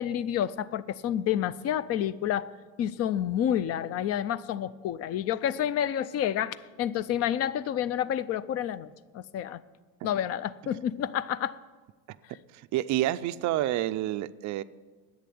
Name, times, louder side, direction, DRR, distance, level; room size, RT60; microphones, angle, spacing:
voice 1, 0.0-2.5 2.8-9.6 10.0-11.6, left 10 dB, 35° left, 18 dB, 0.4 m, -29 dB
voice 2, 12.7-14.6, right 14 dB, 40° right, 13 dB, 0.4 m, -28 dB
10.5 x 8.6 x 9.2 m, 1.4 s
supercardioid pair, 125°, 45 cm